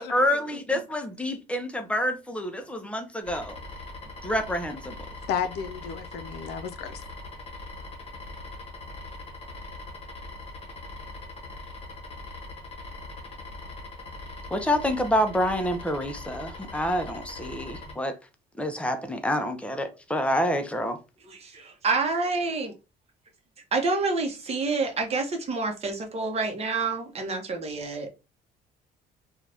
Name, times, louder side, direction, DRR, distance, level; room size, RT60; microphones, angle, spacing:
voice 1, 0.0-3.6 4.2-5.0 14.5-18.1 18.6-21.0, left 1 dB, 5° left, 0.5 m, -27 dB
sound 1, 3.2-17.9, left 2 dB, 35° left, 1.2 m, -41 dB
voice 2, 5.3-7.0, left 7 dB, 80° left, 0.5 m, -33 dB
voice 3, 21.3-22.7 23.7-28.1, right 3 dB, 40° right, 0.8 m, -28 dB
2.6 x 2.3 x 3.3 m
cardioid pair, 110°, 17 cm